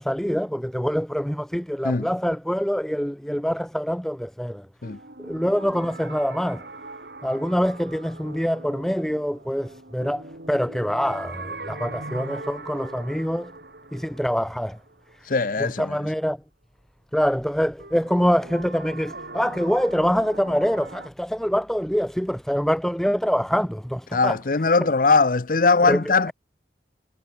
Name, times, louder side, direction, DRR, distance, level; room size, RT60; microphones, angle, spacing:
voice 1, 0.0-4.7 5.2-6.6 7.2-13.5 13.9-14.8 15.6-16.4 17.1-24.4 25.9-26.3, equal, ahead, 0.9 m, -25 dB
sound 1, 4.8-15.7 17.8-21.1, right 2 dB, 65° right, 3.6 m, -41 dB
voice 2, 15.3-15.9 24.1-26.3, left 4 dB, 50° left, 0.7 m, -20 dB
head